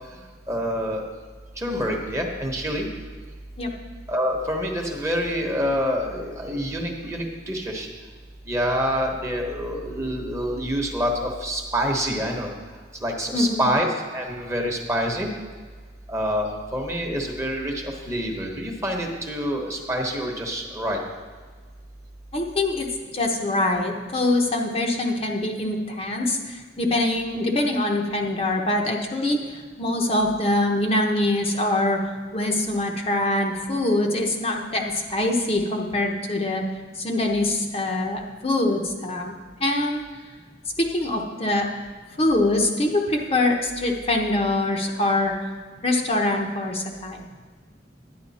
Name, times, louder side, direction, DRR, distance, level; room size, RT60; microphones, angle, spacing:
voice 1, 0.5-1.0 1.6-2.9 4.1-7.9 8.5-12.5 13.0-13.9 14.1-15.3 16.1-21.0, equal, 15° right, 1 dB, 1.1 m, -26 dB
voice 2, 13.3-13.7 22.3-22.9 23.1-32.0 32.3-36.6 37.0-40.0 40.8-41.7 42.2-45.5 45.8-47.2, left 2 dB, 30° left, 0 dB, 0.8 m, -24 dB
10.5 x 9.8 x 4.2 m, 1.5 s
head